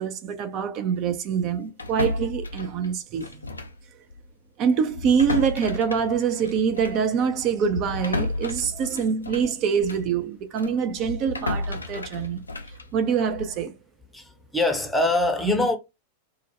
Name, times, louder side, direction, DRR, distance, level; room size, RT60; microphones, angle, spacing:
voice 1, 0.0-3.6 4.6-12.4 12.9-13.7, right 7 dB, 40° right, 0.4 m, -25 dB
sound 1, 1.8-3.8 4.1-4.3 4.9-10.1 10.6-13.6, left 2 dB, 80° left, 0.3 m, -33 dB
voice 2, 14.1-15.8, left 2 dB, 5° left, 0.6 m, -24 dB
2.4 x 2.1 x 2.8 m
figure-of-eight pair, 90°, 0 cm